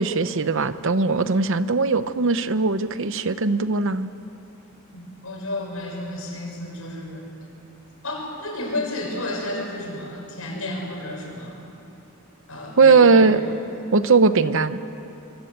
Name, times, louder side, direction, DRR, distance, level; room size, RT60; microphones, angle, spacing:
voice 1, 0.0-4.1 12.8-13.4 13.9-14.8, right 4 dB, 65° right, 12 dB, 0.9 m, -19 dB
voice 2, 4.9-7.3 8.0-11.6 12.5-13.5, left 1 dB, 85° left, 0 dB, 6.6 m, -32 dB
26.0 x 23.5 x 8.1 m, 2.9 s
head